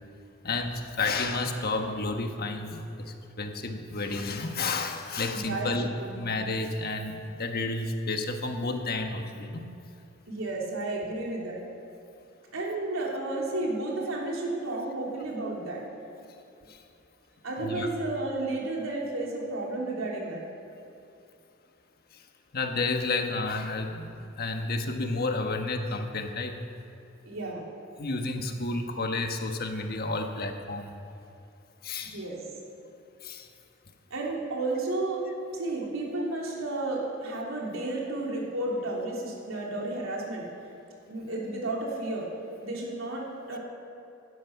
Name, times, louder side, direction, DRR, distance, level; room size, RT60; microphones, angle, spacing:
voice 1, 0.4-9.7 16.7-16.8 17.6-17.9 22.1-22.2 22.5-26.6 28.0-30.9 31.8-32.2 33.2-33.5, left 3 dB, 50° left, 5 dB, 1.3 m, -31 dB
voice 2, 5.3-5.7 6.0-6.2 10.3-11.6 12.5-15.8 17.4-20.4 27.2-27.7 28.3-28.4 32.0-32.4 34.1-35.2 35.5-40.5 41.1-42.3 42.6-43.6, right 2 dB, 85° right, -3 dB, 3.3 m, -32 dB
16.5 x 12.0 x 5.9 m, 2.7 s
head